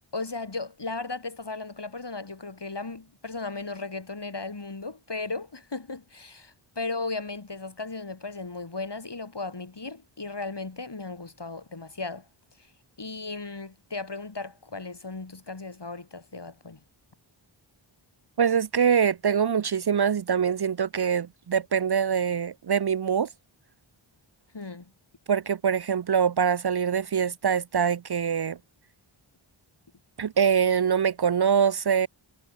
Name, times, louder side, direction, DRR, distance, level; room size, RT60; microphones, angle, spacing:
voice 1, 0.1-12.3 12.6-12.7 13.0-16.8 24.5-24.9, left 3 dB, 55° left, 4.0 m, -36 dB
voice 2, 18.4-23.3 25.3-28.6 30.2-32.1, right 7 dB, 50° right, 0.6 m, -24 dB
wide cardioid pair, 50°, 50 cm